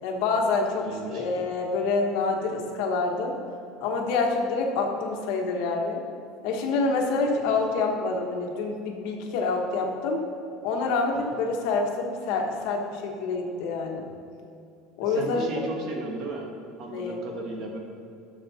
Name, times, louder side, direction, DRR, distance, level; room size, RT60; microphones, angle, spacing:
voice 1, 0.0-3.4 3.8-6.0 6.4-10.2 10.6-14.1 15.0-15.6 16.9-17.2, left 3 dB, 65° left, 1 dB, 1.4 m, -27 dB
voice 2, 0.8-1.2 11.1-11.4 15.1-16.5 16.8-17.8, right 2 dB, 40° right, 1 dB, 1.4 m, -35 dB
12.0 x 6.7 x 4.3 m, 2.6 s
cardioid pair, 165°, 0 cm